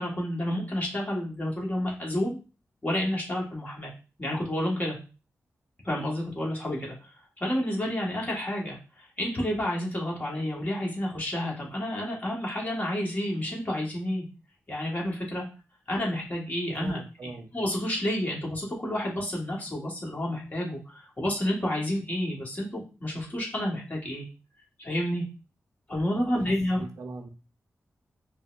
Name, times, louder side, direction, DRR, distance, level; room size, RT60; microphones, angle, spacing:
voice 1, 0.0-2.4 2.8-3.9 4.2-5.0 5.8-6.9 7.4-14.2 14.7-15.4 15.9-24.2 24.8-25.2 25.9-26.8, left 1 dB, 30° left, -3 dB, 1.5 m, -30 dB
voice 2, 16.8-17.5 26.2-27.3, right 3 dB, 75° right, 4 dB, 0.6 m, -41 dB
5.2 x 2.1 x 2.5 m, 0.33 s
wide cardioid pair, 85°, 5 cm